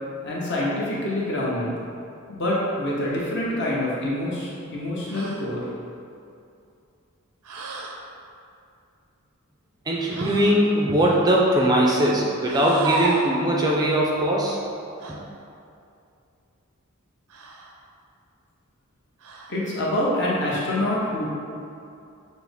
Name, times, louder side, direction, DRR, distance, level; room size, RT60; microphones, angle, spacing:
voice 1, 0.2-1.8 2.3-5.6 19.5-21.3, left 1 dB, 55° left, -5 dB, 0.9 m, -26 dB
sound 1, 5.1-5.5 7.4-8.0 10.1-10.6 12.4-13.4 15.0-15.2 17.3-17.8 19.2-19.7, right 2 dB, 90° right, 0.5 m, -32 dB
voice 2, 9.9-14.6, right 1 dB, 20° right, -3 dB, 0.4 m, -20 dB
5.9 x 2.0 x 3.4 m, 2.6 s
head